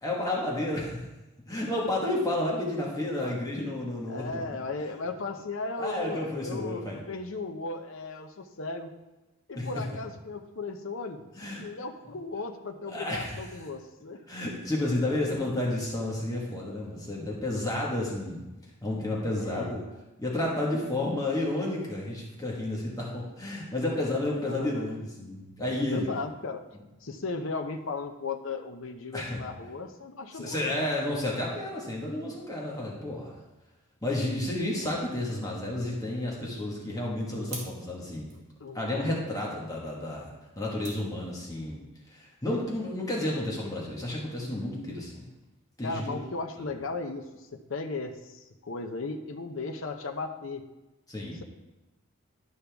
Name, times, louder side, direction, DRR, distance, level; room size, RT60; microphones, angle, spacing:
voice 1, 0.0-1.0 1.5-4.4 5.8-7.0 9.6-9.8 11.3-11.6 12.9-13.4 14.3-18.4 18.8-19.8 20.2-26.1 29.1-29.4 30.3-33.4 34.0-38.3 38.7-41.8 42.1-45.3 45.8-46.2 51.1-51.4, left 1 dB, 15° left, -4 dB, 1.5 m, -31 dB
voice 2, 4.1-8.9 9.5-11.3 11.6-14.2 19.4-19.7 23.9-24.1 24.4-25.0 25.6-26.6 27.0-30.9 38.6-38.8 45.8-50.6, left 3 dB, 65° left, 5 dB, 0.7 m, -36 dB
sound 1, 37.2-41.8, right 3 dB, 50° right, 2.2 m, -50 dB
11.5 x 5.5 x 3.5 m, 1.0 s
head